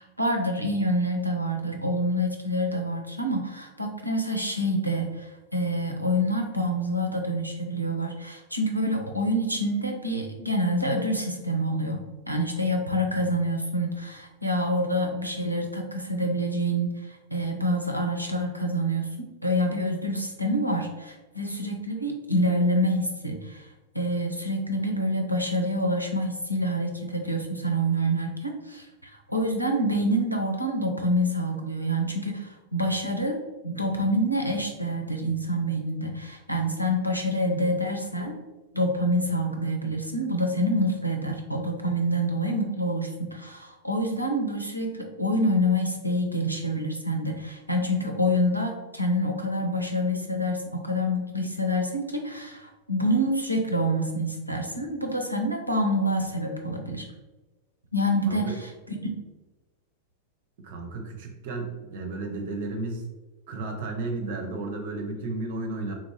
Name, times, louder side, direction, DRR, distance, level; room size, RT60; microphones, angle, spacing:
voice 1, 0.0-23.7 23.9-33.4 33.6-38.4 38.7-57.0 57.9-59.1, equal, 90° right, 3 dB, 0.5 m, -27 dB
voice 2, 60.6-63.1 63.5-65.9, right 2 dB, 55° right, 3 dB, 0.7 m, -33 dB
3.9 x 2.6 x 3.1 m, 1.1 s
figure-of-eight pair, 90°, 0 cm